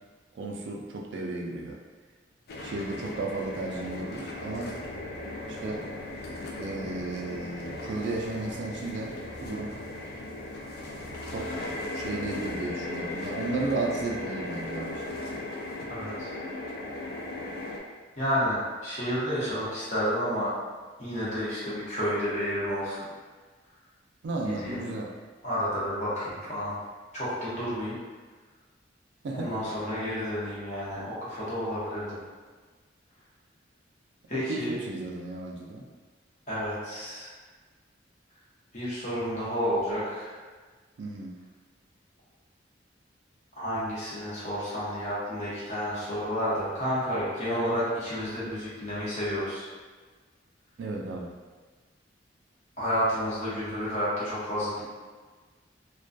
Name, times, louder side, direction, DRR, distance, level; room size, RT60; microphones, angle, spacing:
voice 1, 0.4-1.8 2.6-4.7 5.5-5.9 6.5-9.7 11.3-15.4 24.2-25.1 29.2-29.5 34.3-35.8 41.0-41.3 50.8-51.3, right 2 dB, 65° right, 0 dB, 0.3 m, -34 dB
sound 1, 2.5-17.8, left 2 dB, 55° left, 0.3 m, -37 dB
voice 2, 15.9-16.4 18.2-20.5 21.0-23.1 24.4-24.8 25.4-26.8 27.1-27.9 29.3-32.2 34.3-34.7 36.5-37.3 38.7-40.4 43.6-49.7 52.8-54.9, equal, 40° left, -9 dB, 0.8 m, -30 dB
2.2 x 2.2 x 2.5 m, 1.4 s
head